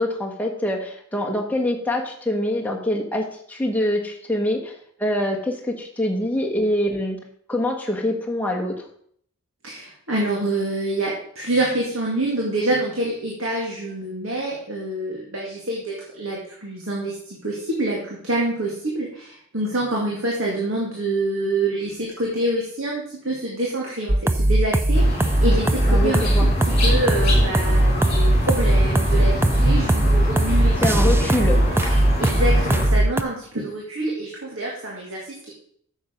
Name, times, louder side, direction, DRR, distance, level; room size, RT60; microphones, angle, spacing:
voice 1, 0.0-4.7 5.0-7.2 7.5-8.8 25.9-26.5 30.8-31.6, left 1 dB, 5° left, 0 dB, 1.4 m, -24 dB
voice 2, 9.6-26.5 26.8-30.9 31.4-31.5 31.9-35.5, right 1 dB, 60° right, -3 dB, 2.2 m, -26 dB
sound 1, 24.1-33.2, right 1 dB, 10° right, 0.3 m, -19 dB
sound 2, 24.9-32.9, left 1 dB, 30° left, 3.6 m, -26 dB
9.2 x 7.2 x 5.2 m, 0.64 s
head